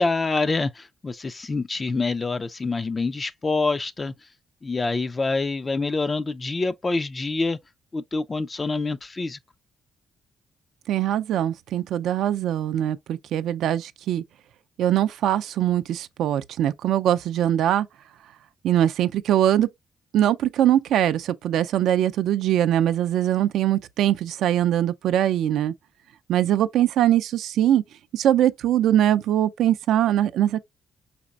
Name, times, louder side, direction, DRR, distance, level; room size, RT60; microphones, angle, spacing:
voice 1, 0.0-4.1 4.6-7.6 7.9-9.4, left 3 dB, 30° left, 0.3 m, -26 dB
voice 2, 10.9-14.2 14.8-17.9 18.6-19.7 20.1-25.7 26.3-27.8 28.1-30.6, right 11 dB, 80° right, 0.4 m, -22 dB
5.0 x 4.1 x 2.3 m
cardioid pair, 90°, 0 cm